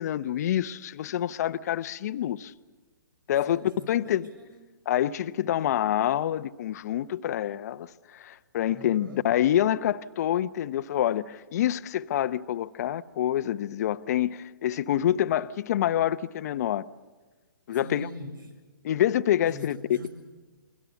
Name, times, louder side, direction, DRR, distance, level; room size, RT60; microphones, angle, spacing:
voice 1, 0.0-2.5 3.3-4.3 4.9-16.8 17.7-18.1 18.8-19.8, left 11 dB, 50° left, 0.8 m, -27 dB
voice 2, 3.5-4.8 8.7-9.3 17.7-18.5 19.5-20.1, left 1 dB, 80° right, 7.2 m, -43 dB
30.0 x 22.0 x 7.1 m
hypercardioid pair, 135°, 11 cm